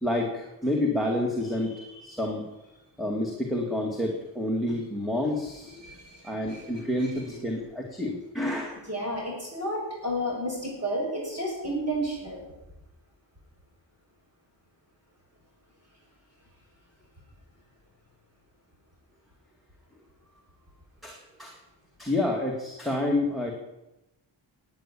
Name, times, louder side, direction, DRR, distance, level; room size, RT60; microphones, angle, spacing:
voice 1, 0.0-2.4 3.0-5.8 6.2-8.8 21.0-21.6 22.0-23.5, left 1 dB, ahead, 0 dB, 2.3 m, -29 dB
voice 2, 5.8-6.2 6.5-6.7 8.9-12.4, equal, 35° right, -3 dB, 7.3 m, -31 dB
19.0 x 8.9 x 8.6 m, 0.95 s
wide cardioid pair, 140°, 45 cm